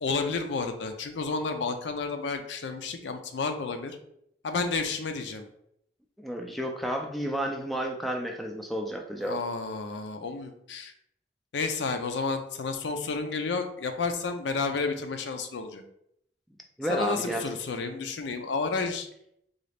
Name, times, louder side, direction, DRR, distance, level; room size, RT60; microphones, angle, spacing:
voice 1, 0.0-4.0 4.4-5.4 9.2-10.9 11.5-15.8 16.9-19.1, left 4 dB, 80° left, 6 dB, 0.5 m, -31 dB
voice 2, 6.2-9.4 16.8-17.4, equal, ahead, 2 dB, 0.3 m, -31 dB
3.8 x 2.4 x 3.3 m, 0.73 s
head